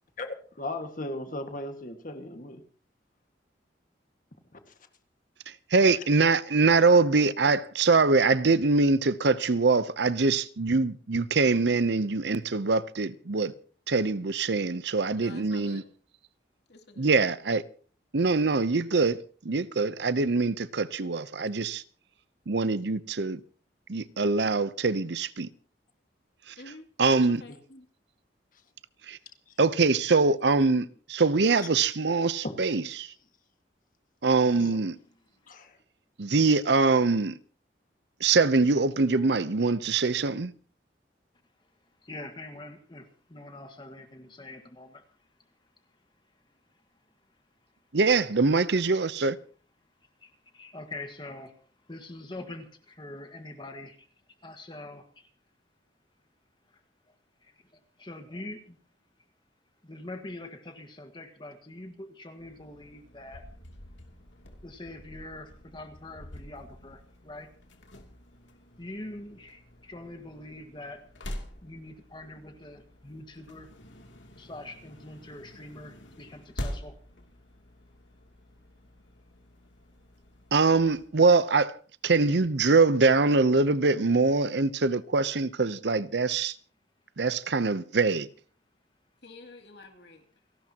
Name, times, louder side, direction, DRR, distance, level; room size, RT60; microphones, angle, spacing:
voice 1, 0.2-2.6 4.5-4.6 27.5-27.6 32.4-32.8 34.6-34.8 35.5-35.8, left 1 dB, 45° left, 1.8 m, -37 dB
voice 2, 5.5-13.5 13.9-15.8 17.0-17.6 18.1-21.8 22.5-23.4 23.9-25.5 26.5-26.6 27.0-27.4 29.1-29.2 29.6-33.1 34.2-35.0 36.2-37.4 38.2-40.5 47.9-49.4 80.5-81.8 82.0-86.5 87.2-88.3, right 3 dB, 65° right, 0.7 m, -23 dB
voice 3, 15.1-15.8 16.7-17.1 26.6-26.8 27.1-27.9 89.2-90.2, left 2 dB, 65° left, 2.6 m, -48 dB
voice 4, 42.0-45.0 50.2-51.5 51.9-54.1 54.4-55.3 56.7-56.8 57.1-57.2 57.4-58.8 59.8-63.5 64.6-67.5 68.8-71.0 71.6-73.7 74.4-76.9, left 2 dB, 25° left, 1.6 m, -44 dB
sound 1, 62.4-81.1, equal, 85° left, 2.8 m, -46 dB
29.0 x 12.5 x 2.9 m
head